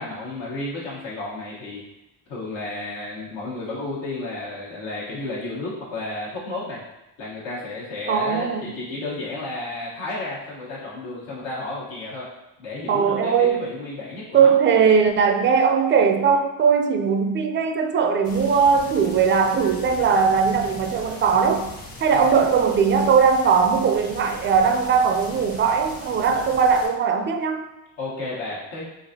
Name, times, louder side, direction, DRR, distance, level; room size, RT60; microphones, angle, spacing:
voice 1, 0.0-1.8 2.3-6.8 7.2-12.2 12.6-14.5 22.1-22.4 28.0-28.9, left 2 dB, 80° left, -6 dB, 1.2 m, -32 dB
voice 2, 8.1-8.8 12.9-13.7 14.3-21.7 22.0-27.6, right 6 dB, 30° right, 6 dB, 0.3 m, -19 dB
sound 1, 18.2-26.9, left 1 dB, 50° left, 1.0 m, -40 dB
3.9 x 2.5 x 2.7 m, 0.94 s
cardioid pair, 75°, 44 cm